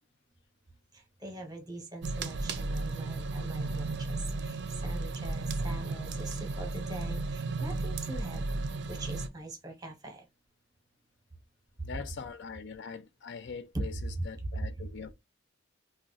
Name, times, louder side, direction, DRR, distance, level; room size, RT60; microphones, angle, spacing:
voice 1, 0.9-8.4 8.9-10.3 13.7-13.8 14.5-15.1, right 2 dB, 20° right, 0.9 m, -42 dB
sound 1, 2.0-9.3, right 3 dB, 65° right, 0.5 m, -34 dB
voice 2, 11.8-15.1, left 6 dB, 65° left, 0.4 m, -42 dB
2.4 x 2.2 x 3.9 m
head